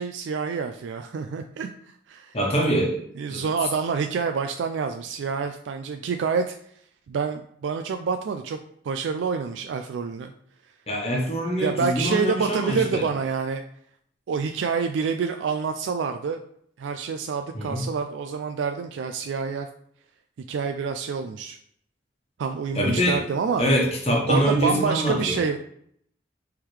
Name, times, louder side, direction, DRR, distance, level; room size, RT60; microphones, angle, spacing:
voice 1, 0.0-2.4 3.2-6.6 7.1-8.6 8.8-10.3 11.6-13.6 14.3-16.4 16.8-19.7 20.5-21.6 22.4-23.7 24.3-25.6, right 5 dB, 80° right, 6 dB, 0.3 m, -27 dB
voice 2, 2.3-3.0 3.3-3.4 10.9-13.1 17.5-17.9 22.7-23.2 23.6-25.4, equal, 35° left, -1 dB, 1.2 m, -24 dB
4.5 x 3.7 x 3.2 m, 0.67 s
head